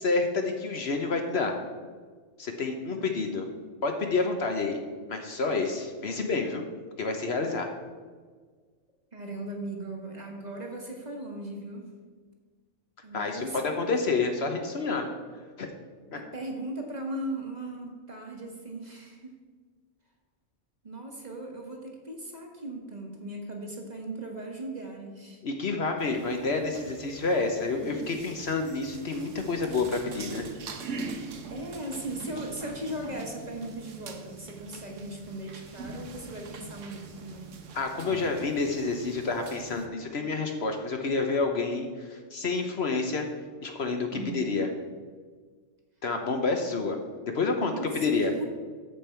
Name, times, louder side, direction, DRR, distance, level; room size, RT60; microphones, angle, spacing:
voice 1, 0.0-1.5 2.4-3.5 3.8-4.8 5.1-6.6 7.0-7.7 13.1-15.1 15.6-15.7 16.1-16.2 25.4-30.4 37.7-43.3 43.6-44.1 44.3-44.7 46.0-47.0 47.3-47.7 48.0-48.3, left 3 dB, 55° left, 4 dB, 1.1 m, -29 dB
voice 2, 9.1-11.9 13.0-14.2 16.1-19.4 20.8-25.4 27.8-28.2 31.5-37.5 44.1-44.5 47.6-48.4, right 1 dB, 35° right, 1 dB, 1.3 m, -38 dB
sound 1, 26.0-39.9, right 4 dB, 70° right, 1.2 m, -43 dB
13.5 x 5.2 x 4.4 m, 1.5 s
omnidirectional pair, 1.4 m